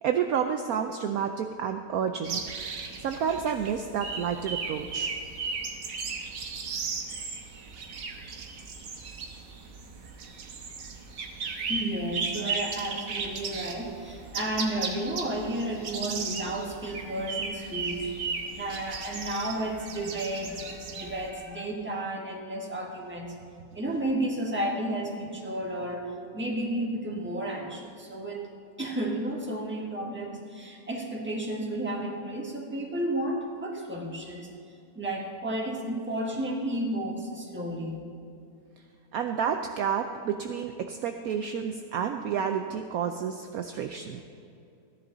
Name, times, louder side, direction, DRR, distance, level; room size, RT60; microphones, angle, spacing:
voice 1, 0.0-2.4 3.0-5.1 39.1-44.2, right 7 dB, 70° right, 6 dB, 0.9 m, -30 dB
sound 1, 2.2-21.3, right 5 dB, 85° right, 1.7 m, -36 dB
voice 2, 11.4-18.0 18.5-23.3 23.7-26.1 26.3-28.5 28.8-34.5 34.9-38.0, right 1 dB, 5° right, -1 dB, 1.3 m, -32 dB
15.0 x 11.0 x 3.9 m, 2.6 s
omnidirectional pair, 1.8 m